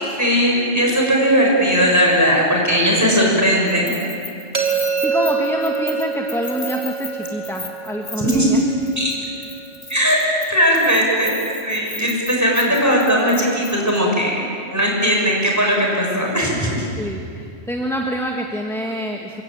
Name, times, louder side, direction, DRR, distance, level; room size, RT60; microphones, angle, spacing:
voice 1, 0.2-3.9 8.2-8.6 9.0-9.1 9.9-10.2 10.5-11.4 11.6-16.8, equal, 15° right, -2 dB, 6.7 m, -18 dB
Keys jangling, 3.7-8.6 8.9-9.2 9.4-14.0, left 3 dB, 55° left, 2.8 m, -35 dB
sound 1, 4.5-10.4, right 6 dB, 70° right, 3.0 m, -26 dB
voice 2, 5.0-8.6 12.7-12.8 17.0-19.4, equal, ahead, 1 dB, 1.8 m, -26 dB
27.0 x 24.5 x 9.0 m, 2.4 s
omnidirectional pair, 1.1 m